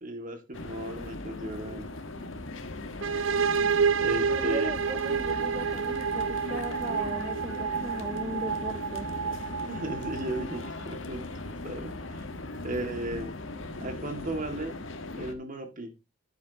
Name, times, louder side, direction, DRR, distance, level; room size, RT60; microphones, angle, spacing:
voice 1, 0.0-1.9 4.0-4.7 9.7-11.3 11.6-12.3 12.6-13.3 13.8-14.8 15.2-15.9, right 1 dB, 45° right, 5 dB, 2.2 m, -35 dB
sound 1, 0.5-15.3, left 2 dB, 75° left, 1.5 m, -39 dB
sound 2, 3.0-10.7, right 6 dB, 80° right, 0.5 m, -29 dB
voice 2, 4.3-9.1, right 1 dB, 25° right, 7 dB, 0.9 m, -38 dB
11.0 x 8.6 x 2.9 m, 0.23 s
head